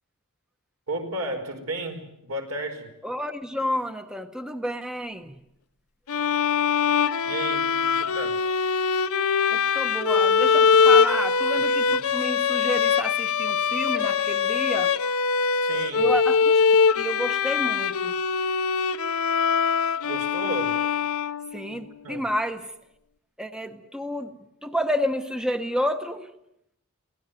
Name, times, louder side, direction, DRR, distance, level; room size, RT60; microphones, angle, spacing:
voice 1, 0.9-2.9 7.2-8.4 11.9-12.0 15.6-16.1 20.0-20.8 21.7-22.3, right 1 dB, 75° right, 3 dB, 4.9 m, -33 dB
voice 2, 3.0-5.3 9.5-14.9 16.0-16.6 17.0-18.2 21.5-22.7 23.4-24.3 24.6-26.3, equal, 5° right, 8 dB, 0.9 m, -30 dB
sound 1, 6.1-21.7, left 6 dB, 70° left, 0.8 m, -22 dB
23.5 x 17.5 x 9.3 m, 0.80 s
head